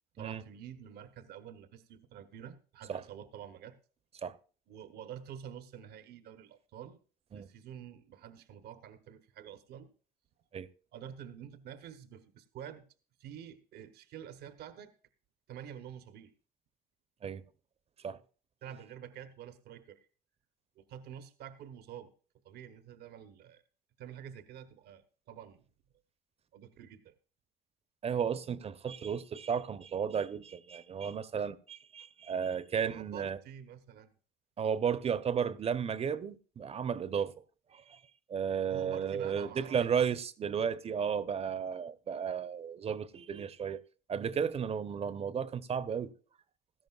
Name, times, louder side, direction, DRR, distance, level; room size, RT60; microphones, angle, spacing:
voice 1, 0.1-3.7 4.7-7.0 7.3-9.9 10.9-12.8 13.2-14.9 15.5-16.3 18.6-20.1 20.8-22.1 22.4-23.6 24.0-25.6 26.5-27.1 32.8-34.1 38.7-39.9, right 9 dB, 70° right, 1.0 m, -48 dB
voice 2, 28.0-33.4 34.6-37.3 37.7-38.0 38.3-43.8 44.1-46.1, right 7 dB, 35° right, 0.7 m, -33 dB
16.5 x 13.0 x 2.4 m
cardioid pair, 110°, 17 cm